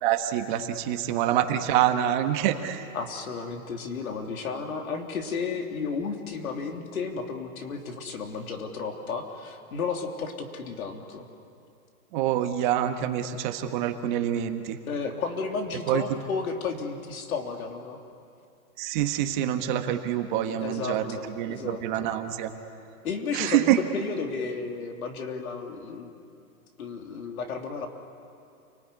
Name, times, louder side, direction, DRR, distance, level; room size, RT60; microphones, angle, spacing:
voice 1, 0.0-2.8 12.1-14.8 15.9-16.0 18.8-22.5 23.3-23.8, right 11 dB, 35° right, 6 dB, 1.4 m, -26 dB
voice 2, 2.9-11.2 14.9-18.0 20.6-22.1 23.0-26.1 26.8-27.9, left 5 dB, 75° left, 3 dB, 3.4 m, -33 dB
29.0 x 20.0 x 9.7 m, 2.5 s
hypercardioid pair, 150°, 43 cm